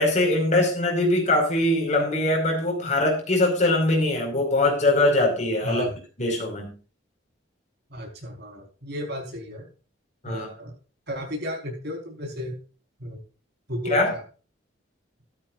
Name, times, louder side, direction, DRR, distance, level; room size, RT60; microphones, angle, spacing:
voice 1, 0.0-5.8 6.2-6.7 10.2-10.5 13.9-14.1, left 2 dB, 35° left, 2 dB, 4.8 m, -22 dB
voice 2, 5.6-5.9 7.9-9.7 10.2-10.7 11.1-12.6 13.0-13.2 13.7-14.2, equal, 55° right, 2 dB, 4.4 m, -33 dB
13.0 x 13.0 x 2.5 m, 0.35 s
head